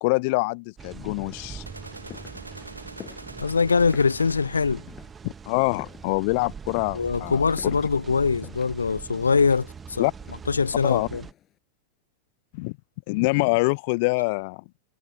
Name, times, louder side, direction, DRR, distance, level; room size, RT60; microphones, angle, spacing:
voice 1, 0.0-1.6 5.2-7.7 10.0-10.1 10.8-11.1 12.5-12.8 13.1-14.6, left 28 dB, 45° left, 1.1 m, -25 dB
sound 1, 0.8-11.3, right 6 dB, 20° right, 1.6 m, -42 dB
sound 2, 0.9-11.6, left 11 dB, 30° left, 7.2 m, -49 dB
sound 3, 1.7-4.8, right 2 dB, 85° right, 2.0 m, -42 dB
voice 2, 3.4-4.8 6.9-10.1 10.5-11.2, left 5 dB, 75° left, 1.0 m, -23 dB
figure-of-eight pair, 90°, 0 cm